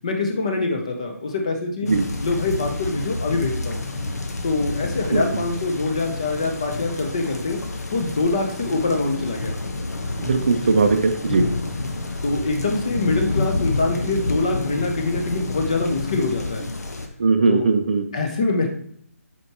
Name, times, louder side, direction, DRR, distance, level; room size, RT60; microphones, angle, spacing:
voice 1, 0.0-1.9 2.2-3.8 4.4-7.6 7.9-9.6 12.2-16.7 17.5-17.7 18.1-18.7, left 3 dB, 25° left, 3 dB, 0.6 m, -24 dB
sound 1, 1.9-17.1, left 3 dB, 80° left, 1.0 m, -29 dB
voice 2, 10.2-11.5 17.2-18.0, right 4 dB, 35° right, 7 dB, 0.5 m, -19 dB
8.4 x 4.6 x 2.9 m, 0.62 s
hypercardioid pair, 175°, 9 cm